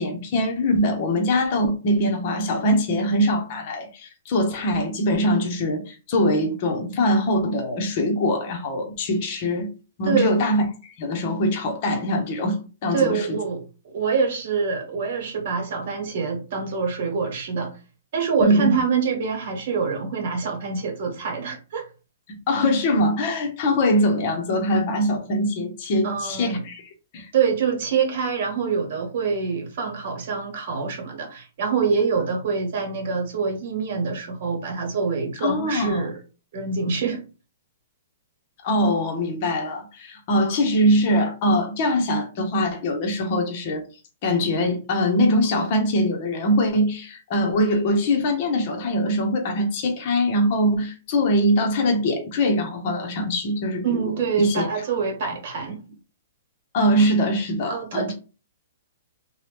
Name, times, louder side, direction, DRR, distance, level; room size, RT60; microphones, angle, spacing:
voice 1, 0.0-9.7 10.0-10.6 11.0-13.4 18.4-18.8 22.5-27.3 35.4-36.1 38.6-43.8 44.2-54.7 55.2-55.3 56.7-58.1, equal, 35° left, 0.8 m, -22 dB
voice 2, 10.0-10.4 12.9-17.7 18.1-21.9 26.0-26.6 27.3-36.2 36.5-37.2 53.8-55.8 57.7-58.1, right 5 dB, 50° right, 1.3 m, -25 dB
2.9 x 2.2 x 3.3 m
hypercardioid pair, 160°, 0 cm